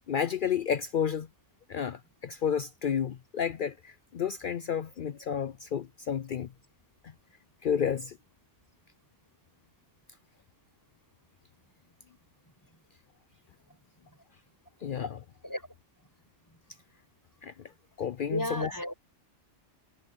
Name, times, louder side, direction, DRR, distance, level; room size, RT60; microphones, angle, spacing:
voice 1, 0.1-1.3 1.7-6.5 7.6-8.2 14.8-15.2 17.4-17.5 18.0-18.7, left 8 dB, 60° left, 0.6 m, -31 dB
voice 2, 18.3-18.9, equal, 15° left, 7.6 m, -34 dB
omnidirectional pair, 1.3 m